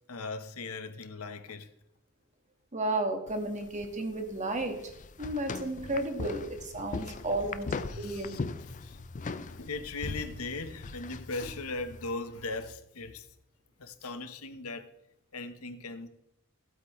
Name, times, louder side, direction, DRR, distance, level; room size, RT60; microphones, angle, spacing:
voice 1, 0.1-1.7 6.9-7.2 7.9-13.3 13.8-14.9 15.3-16.1, left 3 dB, 80° left, 1.0 m, -39 dB
voice 2, 2.7-4.9 5.2-8.5, right 2 dB, 35° right, 1.5 m, -33 dB
sound 1, 3.3-12.1, left 4 dB, 35° left, 0.5 m, -40 dB
16.0 x 8.2 x 3.1 m
head